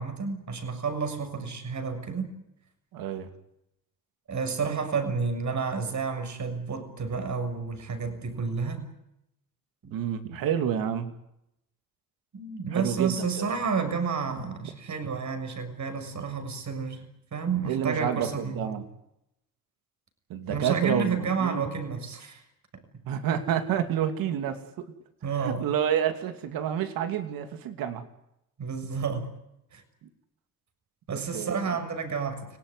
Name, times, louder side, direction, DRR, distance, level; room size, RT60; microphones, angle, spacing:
voice 1, 0.0-2.3 4.3-8.8 9.8-9.9 12.3-18.8 20.5-22.4 22.7-23.1 25.2-25.7 28.6-29.3 29.7-29.8 31.1-32.6, right 5 dB, 55° right, 8 dB, 6.5 m, -30 dB
voice 2, 2.9-3.3 9.9-11.1 12.7-13.5 17.7-18.8 20.3-21.6 23.1-24.9 25.4-28.0 31.1-31.6, right 9 dB, 90° right, 8 dB, 2.8 m, -29 dB
29.5 x 19.0 x 9.9 m, 0.83 s
cardioid pair, 75°, 34 cm